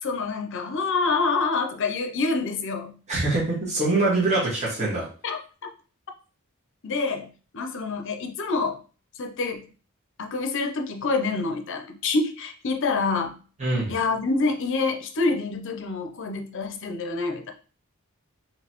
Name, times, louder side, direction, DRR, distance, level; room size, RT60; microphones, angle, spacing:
voice 1, 0.0-3.0 5.2-5.4 6.8-8.8 9.2-9.7 10.2-13.4 13.9-17.5, left 3 dB, 55° left, 5 dB, 0.6 m, -27 dB
voice 2, 3.1-5.1 13.6-13.9, right 2 dB, 30° right, -7 dB, 1.5 m, -24 dB
3.9 x 3.1 x 2.9 m, 0.39 s
head